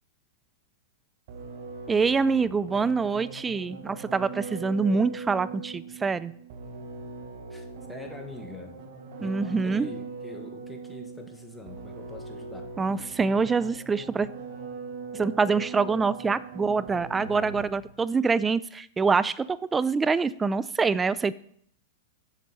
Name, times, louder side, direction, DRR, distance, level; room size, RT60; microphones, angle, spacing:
sound 1, 1.3-17.9, right 4 dB, 55° right, 1.4 m, -41 dB
voice 1, 1.9-6.3 9.2-9.9 12.8-14.3 15.1-21.3, right 4 dB, 15° right, 17 dB, 0.3 m, -25 dB
voice 2, 7.5-8.8 9.2-12.7, left 2 dB, 5° left, 3 dB, 1.4 m, -44 dB
7.6 x 6.6 x 4.2 m, 0.64 s
hypercardioid pair, 105°, 0 cm